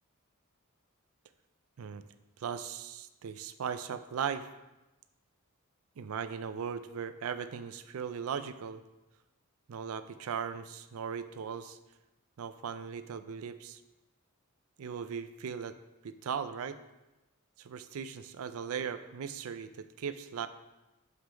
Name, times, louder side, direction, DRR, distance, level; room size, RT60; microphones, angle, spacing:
voice 1, 2.4-4.5 6.0-8.8 9.7-11.8 12.4-13.8 14.8-15.7 16.0-16.8 17.6-19.7 20.0-20.5, right 7 dB, 70° right, 11 dB, 0.4 m, -38 dB
5.8 x 5.7 x 5.0 m, 1.0 s
head